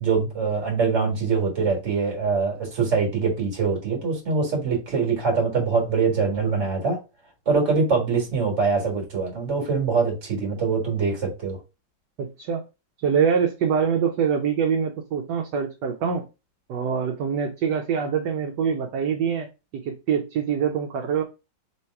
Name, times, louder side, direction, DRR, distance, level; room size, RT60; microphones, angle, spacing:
voice 1, 0.0-7.0 7.4-11.6, right 4 dB, 40° right, 1.6 m, -23 dB
voice 2, 12.2-12.6 13.0-16.2 16.7-21.2, right 7 dB, 70° right, 1.1 m, -24 dB
3.1 x 3.0 x 4.4 m
omnidirectional pair, 2.1 m